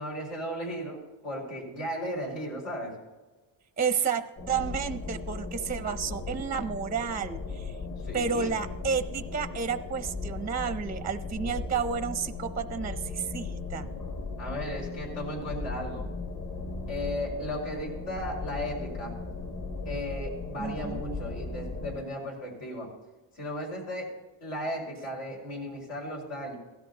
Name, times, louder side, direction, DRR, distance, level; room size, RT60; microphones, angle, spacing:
voice 1, 0.0-3.0 8.0-8.5 14.4-16.1 16.9-19.1 19.8-22.9 23.3-24.1 24.4-26.6, equal, 80° left, -1 dB, 5.1 m, -35 dB
voice 2, 3.8-7.8 8.1-13.9 20.6-21.0, right 6 dB, 20° right, 10 dB, 0.4 m, -31 dB
sound 1, 4.4-22.0, left 3 dB, 40° left, 1.6 m, -37 dB
16.5 x 13.0 x 2.8 m, 1.2 s
cardioid pair, 105°, 48 cm